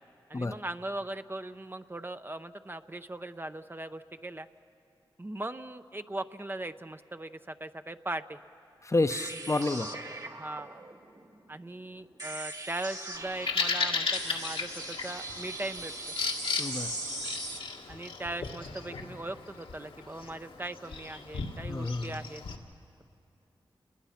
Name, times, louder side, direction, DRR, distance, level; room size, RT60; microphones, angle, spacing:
voice 1, 0.3-4.5 5.2-8.4 10.4-10.8 11.5-16.2 17.9-22.4, right 1 dB, 25° right, 9 dB, 0.7 m, -39 dB
voice 2, 8.8-9.9 16.6-16.9 21.7-22.2, left 2 dB, 35° left, 10 dB, 0.8 m, -29 dB
sound 1, 9.1-17.6, right 2 dB, 45° right, 2.1 m, -40 dB
Bird vocalization bird call bird song, 13.1-22.6, left 4 dB, 80° left, 1.6 m, -36 dB
29.5 x 20.5 x 5.9 m, 2.7 s
cardioid pair, 45°, 9 cm